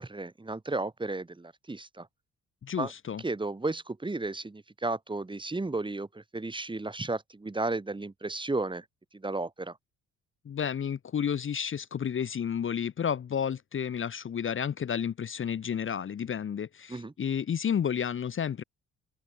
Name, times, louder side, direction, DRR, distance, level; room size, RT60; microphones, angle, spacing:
voice 1, 0.0-2.1 2.8-2.9 3.2-8.8 9.1-9.8 16.9-17.1, right 2 dB, 15° right, 2.0 m, -33 dB
voice 2, 2.6-3.2 10.4-18.6, left 8 dB, 40° left, 1.0 m, -31 dB
open air
cardioid pair, 90°, 30 cm